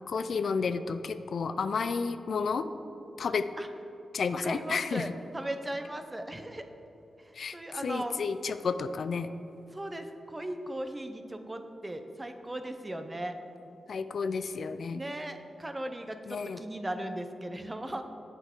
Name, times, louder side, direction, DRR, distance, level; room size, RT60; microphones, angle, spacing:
voice 1, 0.1-2.7 3.2-3.5 4.1-5.1 7.3-9.3 13.9-15.0 16.3-16.6, left 5 dB, 70° left, 11 dB, 0.3 m, -31 dB
voice 2, 4.4-6.7 7.2-8.2 9.7-13.4 14.9-18.0, right 1 dB, 20° right, 7 dB, 0.6 m, -37 dB
8.0 x 8.0 x 3.7 m, 3.0 s
cardioid pair, 70°, 0 cm